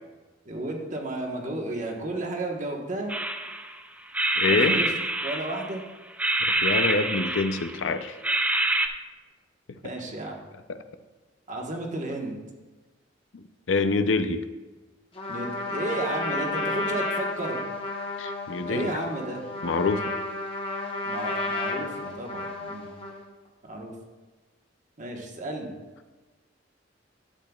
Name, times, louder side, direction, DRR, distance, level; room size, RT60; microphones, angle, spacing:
voice 1, 0.4-3.1 4.5-4.9 5.2-5.8 9.8-10.4 11.5-12.4 15.3-17.6 18.7-19.4 21.1-22.9 23.6-23.9 25.0-25.7, right 1 dB, 40° right, 1 dB, 1.3 m, -33 dB
sound 1, 3.1-3.8 4.1-5.8 6.2-7.9 8.2-8.9, right 2 dB, 10° right, 0.4 m, -26 dB
voice 2, 4.4-4.8 6.4-8.2 10.7-10.8 13.3-14.4 18.2-18.9 19.6-20.0, left 3 dB, 85° left, 9 dB, 0.6 m, -26 dB
Trumpet, 15.1-23.3, left 2 dB, 30° left, 1.1 m, -32 dB
11.5 x 8.4 x 2.4 m, 1.3 s
head